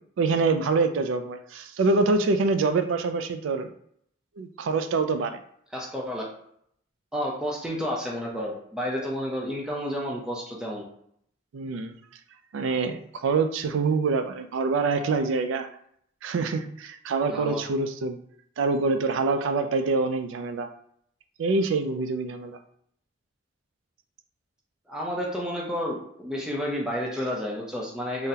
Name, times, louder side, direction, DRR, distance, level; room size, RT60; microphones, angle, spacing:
voice 1, 0.0-3.7 4.4-5.4 11.5-12.0 12.5-15.7 16.2-18.2 18.6-20.7 21.4-22.6, right 4 dB, 85° right, 8 dB, 0.3 m, -25 dB
voice 2, 5.7-6.2 7.1-10.8 17.3-17.6 24.9-28.3, equal, 5° right, -3 dB, 0.5 m, -30 dB
3.8 x 2.1 x 2.8 m, 0.69 s
head